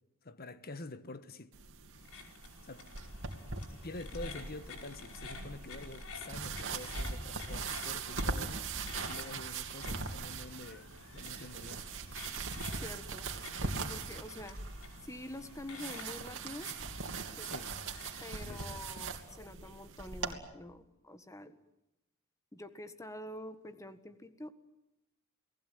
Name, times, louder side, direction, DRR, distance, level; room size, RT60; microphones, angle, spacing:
voice 1, 0.2-1.5 2.6-2.9 3.8-8.6 9.1-11.8 17.4-17.7 18.5-18.8, left 2 dB, 45° left, 1.3 m, -47 dB
sound 1, 1.5-20.3, right 4 dB, 60° right, 3.0 m, -41 dB
sound 2, 2.0-18.8, left 4 dB, 75° left, 5.3 m, -51 dB
voice 2, 12.8-13.3 13.6-14.6 15.0-16.7 17.4-17.7 18.2-21.6 22.5-24.5, left 1 dB, 15° left, 1.6 m, -46 dB
29.5 x 19.0 x 9.4 m
head